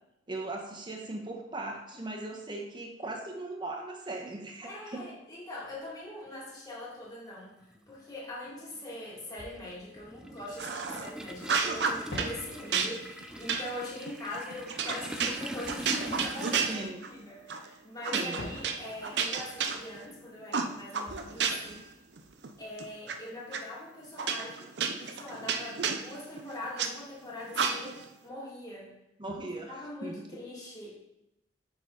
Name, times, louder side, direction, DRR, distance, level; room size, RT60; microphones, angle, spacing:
voice 1, 0.3-5.1 16.7-17.0 18.1-18.4 29.2-30.4, right 2 dB, 25° right, 1 dB, 1.1 m, -39 dB
voice 2, 4.6-7.6 7.9-21.8 22.6-28.9 29.7-31.0, left 1 dB, 20° left, -6 dB, 2.2 m, -42 dB
Toilet flush, 6.3-6.4 7.6-7.8 8.1-16.8, right 1 dB, 5° right, 0.5 m, -43 dB
Fireworks, 9.3-11.3 12.1-17.4 18.4-23.1, left 1 dB, 70° left, 2.8 m, -49 dB
sound 1, 10.6-11.1 11.4-12.3 12.7-17.2 17.5-17.7 18.0-20.1 20.5-21.8 22.2-23.1 23.5-23.6 24.2-26.9 27.5-28.1, right 5 dB, 70° right, 0.6 m, -32 dB
6.8 x 5.9 x 3.8 m, 0.87 s
head